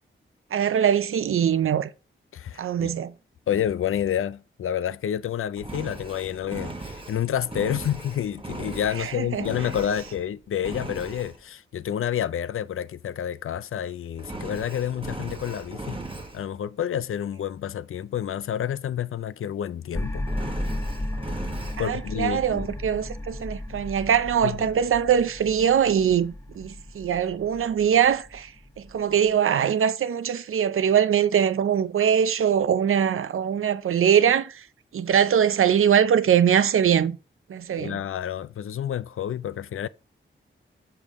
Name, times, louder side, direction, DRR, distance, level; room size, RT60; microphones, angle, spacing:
voice 1, 0.5-1.9 2.6-3.1 9.0-9.4 21.8-28.5 28.8-34.6 34.9-37.2 37.5-38.0, right 8 dB, 85° right, 0.5 m, -22 dB
voice 2, 2.3-3.0 3.5-16.0 16.3-20.2 21.8-22.7 24.4-24.6 37.8-39.9, left 9 dB, 80° left, 0.4 m, -29 dB
Engine, 5.6-10.3 10.6-11.4 14.2-16.4 20.2-21.8, right 2 dB, 25° right, 1.1 m, -38 dB
sound 1, 19.9-29.3, left 1 dB, 10° left, 0.8 m, -35 dB
6.9 x 5.4 x 3.6 m
wide cardioid pair, 110°, 21 cm